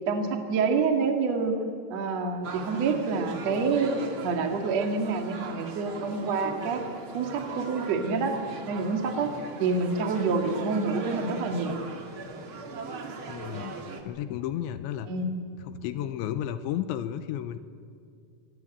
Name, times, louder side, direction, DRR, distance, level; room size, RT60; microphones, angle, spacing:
voice 1, 0.1-1.6 1.9-6.8 7.1-8.4 8.7-9.3 9.6-11.7 15.0-15.3, right 4 dB, 55° right, 4 dB, 1.9 m, -27 dB
sound 1, 2.4-14.0, right 3 dB, 90° right, 1.1 m, -39 dB
voice 2, 13.3-13.7 14.1-15.1 15.6-17.6, left 11 dB, 80° left, 12 dB, 2.9 m, -32 dB
25.0 x 19.0 x 8.9 m, 2.2 s
omnidirectional pair, 5.8 m